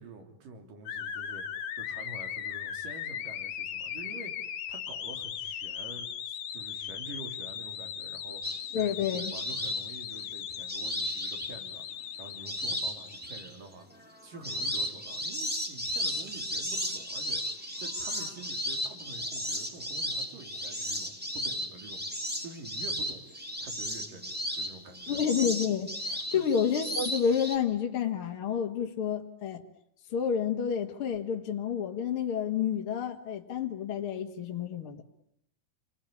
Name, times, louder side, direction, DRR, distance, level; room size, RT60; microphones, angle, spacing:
voice 1, 0.0-1.4 1.8-13.9 14.2-17.4 17.8-23.2 23.6-25.2 26.3-26.4, right 3 dB, 75° right, 4.8 m, -47 dB
sound 1, 0.9-13.2, left 8 dB, 60° left, 2.5 m, -38 dB
sound 2, 8.4-11.9 12.5-13.6 14.0-27.6, equal, 5° right, 2.3 m, -34 dB
voice 2, 8.7-9.3 25.1-29.6 30.1-35.0, left 7 dB, 45° left, 2.3 m, -29 dB
29.0 x 21.0 x 9.9 m
omnidirectional pair, 3.9 m